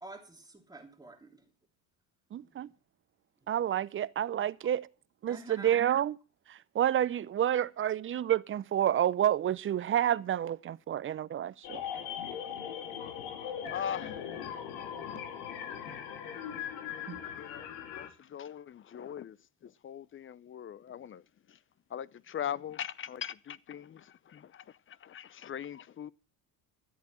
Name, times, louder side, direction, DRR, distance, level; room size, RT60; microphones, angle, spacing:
voice 1, 0.0-1.4 2.3-2.6 3.4-3.5 5.3-5.8, right 2 dB, 10° right, 3.1 m, -49 dB
voice 2, 2.3-2.7 3.5-4.9 5.2-6.1 6.5-11.8 17.1-17.2, right 10 dB, 30° right, 0.5 m, -29 dB
sound 1, 11.6-18.1, left 8 dB, 80° left, 2.8 m, -39 dB
voice 3, 13.7-14.2 15.7-16.0 17.4-19.4 19.6-21.2 21.5-21.6 21.9-26.1, left 9 dB, 25° left, 0.7 m, -41 dB
13.5 x 8.2 x 7.4 m
supercardioid pair, 95°, 46 cm